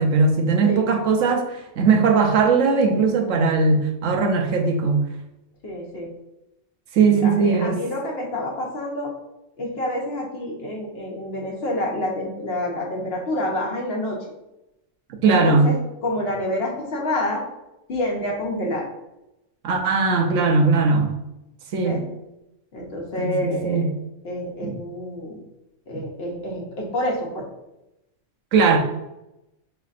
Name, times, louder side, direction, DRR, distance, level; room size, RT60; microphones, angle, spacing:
voice 1, 0.0-5.1 6.9-7.8 15.2-15.7 19.6-21.2 21.7-22.0 23.2-23.9 24.6-24.7 28.5-28.8, right 4 dB, 85° right, 2 dB, 1.0 m, -19 dB
voice 2, 5.6-6.1 7.2-9.1 9.6-14.2 15.2-15.8 16.0-17.4 17.9-18.9 21.8-22.0 22.7-23.9 24.2-25.4 25.9-27.5, left 1 dB, 55° left, -1 dB, 1.0 m, -28 dB
5.1 x 3.3 x 2.4 m, 0.91 s
omnidirectional pair, 1.3 m